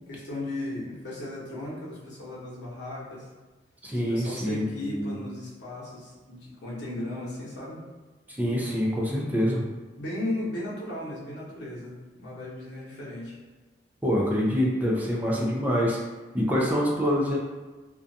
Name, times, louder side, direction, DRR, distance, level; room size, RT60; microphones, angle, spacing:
voice 1, 0.1-3.3 4.1-7.8 10.0-13.4, left 1 dB, 80° left, -7 dB, 0.8 m, -36 dB
voice 2, 3.8-5.2 8.3-9.6 14.0-16.0 16.3-17.4, equal, 10° right, -4 dB, 0.4 m, -25 dB
2.5 x 2.2 x 2.6 m, 1.2 s
head